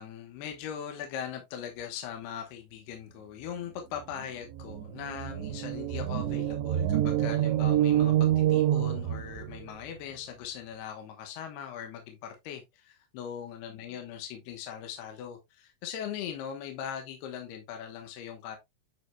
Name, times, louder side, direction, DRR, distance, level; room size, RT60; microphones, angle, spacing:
voice 1, 0.0-18.6, left 8 dB, 70° left, 3.1 m, -40 dB
sound 1, 4.2-4.3 4.5-9.6, right 12 dB, 90° right, 3.0 m, -27 dB
10.0 x 6.4 x 2.4 m
omnidirectional pair, 5.1 m